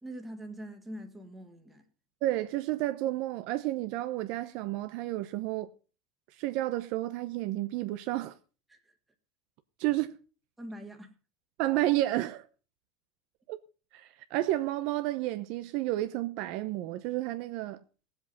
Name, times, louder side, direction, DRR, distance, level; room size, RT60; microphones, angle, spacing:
voice 1, 0.0-1.8 8.7-8.9 10.6-11.1, right 1 dB, 5° right, 1.8 m, -43 dB
voice 2, 2.2-5.7 6.4-8.4 9.8-10.1 11.6-12.4 13.5-13.6 13.9-17.8, right 16 dB, 45° right, 0.8 m, -31 dB
18.0 x 8.0 x 5.6 m
supercardioid pair, 170°, 2 cm